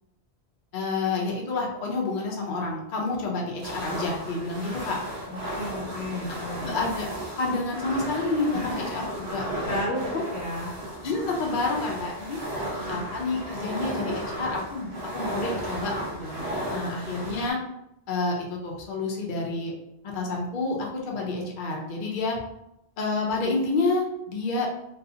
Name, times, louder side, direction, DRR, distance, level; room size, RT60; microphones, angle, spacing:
voice 1, 0.7-5.0 6.6-7.1 7.4-9.5 10.1-10.3 11.0-12.4 12.9-17.6 18.1-19.7 20.0-22.4 23.0-24.7, left 3 dB, 55° left, -1 dB, 0.6 m, -29 dB
sound 1, 3.6-17.5, right 1 dB, 70° right, 0.9 m, -34 dB
voice 2, 5.3-6.7 8.5-8.7 9.7-10.7 12.6-13.0 16.8-17.2, left 1 dB, 85° left, -4 dB, 1.2 m, -33 dB
2.7 x 2.3 x 2.4 m, 0.84 s
omnidirectional pair, 1.1 m